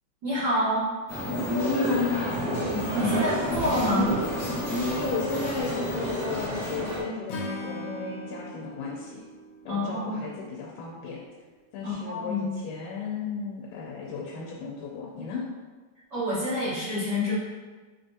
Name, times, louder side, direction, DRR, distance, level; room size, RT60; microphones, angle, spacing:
voice 1, 0.2-0.8 2.7-4.1 9.7-10.2 11.8-12.5 16.1-17.3, left 1 dB, 65° right, -12 dB, 1.0 m, -27 dB
sound 1, 1.1-7.0, equal, 40° left, 1.5 m, -29 dB
voice 2, 1.5-2.4 4.9-9.2 9.7-11.2 11.7-15.4, left 5 dB, 90° left, -2 dB, 2.1 m, -34 dB
Acoustic guitar / Strum, 7.3-10.6, left 1 dB, 70° left, 1.7 m, -39 dB
5.8 x 3.4 x 2.7 m, 1.3 s
omnidirectional pair, 3.5 m